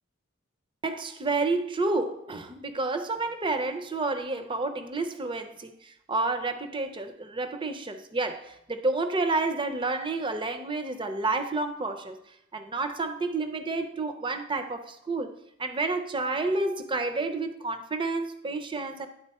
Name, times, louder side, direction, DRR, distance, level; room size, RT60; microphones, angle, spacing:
voice 1, 0.8-12.2 12.5-15.3 15.6-19.1, right 3 dB, 25° right, 9 dB, 0.5 m, -30 dB
9.9 x 3.8 x 4.2 m, 0.80 s
head